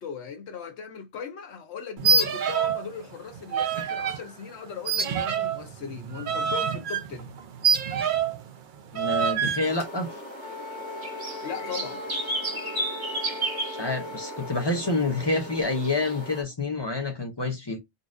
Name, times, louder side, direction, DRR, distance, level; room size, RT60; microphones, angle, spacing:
voice 1, 0.0-7.3 11.4-12.0, left 6 dB, 75° left, 1.0 m, -38 dB
sound 1, 2.0-2.9 3.1-4.2 4.9-8.4 9.0-9.7, right 6 dB, 55° right, 0.6 m, -26 dB
voice 2, 8.9-10.1 13.7-17.8, left 3 dB, 30° left, 0.5 m, -28 dB
sound 2, 9.6-16.4, right 1 dB, 80° right, 1.7 m, -34 dB
Wind instrument woodwind instrument, 10.4-14.7, left 4 dB, 40° right, 1.2 m, -41 dB
3.9 x 2.4 x 2.4 m
omnidirectional pair, 1.1 m